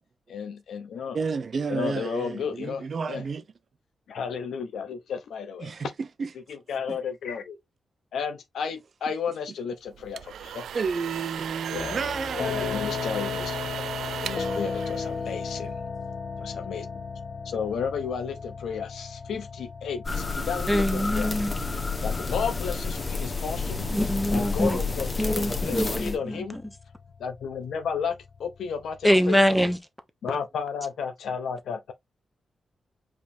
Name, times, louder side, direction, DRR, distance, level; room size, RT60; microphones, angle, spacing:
voice 1, 0.3-1.2 1.7-3.2 4.1-5.7 6.5-7.6 8.1-10.6 11.7-12.0 12.3-13.6 14.2-15.7 16.4-16.9 17.4-21.4 22.0-23.9 24.3-26.6 27.2-29.4 30.2-31.9, left 6 dB, 85° left, 0.7 m, -33 dB
voice 2, 1.1-3.4 5.6-6.3 6.9-7.0 10.7-13.0, right 5 dB, 50° right, 0.6 m, -31 dB
paint burner blowing, 9.9-15.7, right 9 dB, 90° right, 0.3 m, -36 dB
sound 1, 11.7-29.7, left 6 dB, 60° left, 0.5 m, -37 dB
sound 2, 20.0-26.2, left 3 dB, 30° left, 1.2 m, -30 dB
voice 3, 20.7-21.5 23.9-24.8 25.2-26.4 29.0-29.8, equal, 5° left, 0.9 m, -24 dB
4.9 x 3.5 x 2.6 m
cardioid pair, 95°, 0 cm